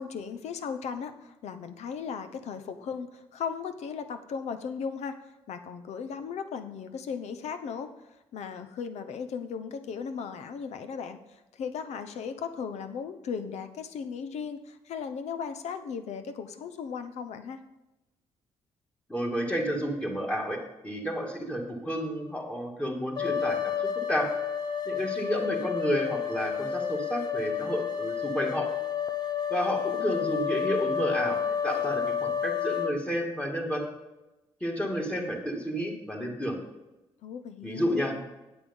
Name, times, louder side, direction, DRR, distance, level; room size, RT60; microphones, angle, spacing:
voice 1, 0.0-5.2 5.5-7.9 8.3-17.6 37.2-38.2, left 6 dB, 75° left, 10 dB, 0.9 m, -36 dB
voice 2, 19.1-24.3 24.9-28.7 29.5-33.8 34.6-36.6 37.6-38.1, equal, 10° left, 1 dB, 2.5 m, -31 dB
sound 1, 23.2-32.9, left 8 dB, 35° left, 1.0 m, -30 dB
8.6 x 8.3 x 5.5 m, 1.0 s
cardioid pair, 85°, 12 cm